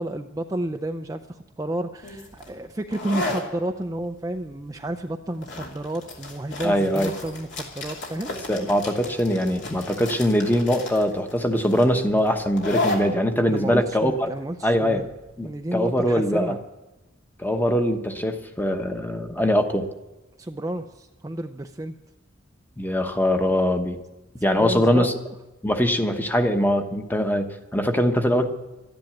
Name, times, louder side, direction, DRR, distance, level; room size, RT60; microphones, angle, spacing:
voice 1, 0.0-8.3 13.5-15.0 15.4-16.6 20.4-21.9 24.6-25.1, right 1 dB, 15° right, 5 dB, 0.5 m, -31 dB
sound 1, 2.0-15.4, left 2 dB, 65° left, 2.8 m, -34 dB
voice 2, 6.6-7.1 8.5-14.3 14.6-15.1 15.4-16.6 17.4-19.9 22.8-24.0 24.4-25.1 25.6-28.5, equal, 10° left, 6 dB, 1.1 m, -22 dB
13.0 x 10.5 x 9.0 m, 1.0 s
head